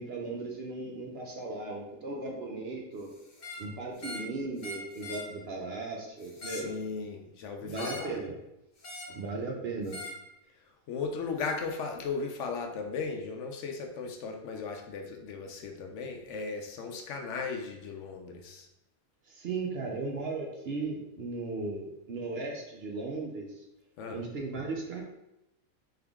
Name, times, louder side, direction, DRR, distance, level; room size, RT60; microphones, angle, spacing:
voice 1, 0.0-3.1 3.6-6.7 7.6-8.3 9.2-10.0 19.3-23.7 24.1-25.0, right 3 dB, 60° right, 0 dB, 0.8 m, -36 dB
sound 1, 3.3-3.7 4.0-4.3 4.6-5.3 6.2-6.7 7.7-8.1 8.8-9.2 9.9-10.2 11.4-11.6, left 1 dB, 40° left, 0.8 m, -41 dB
voice 2, 6.4-8.2 10.6-18.7 24.0-24.2, left 4 dB, 70° left, 3 dB, 0.9 m, -37 dB
3.6 x 3.5 x 3.5 m, 0.91 s
omnidirectional pair, 1.4 m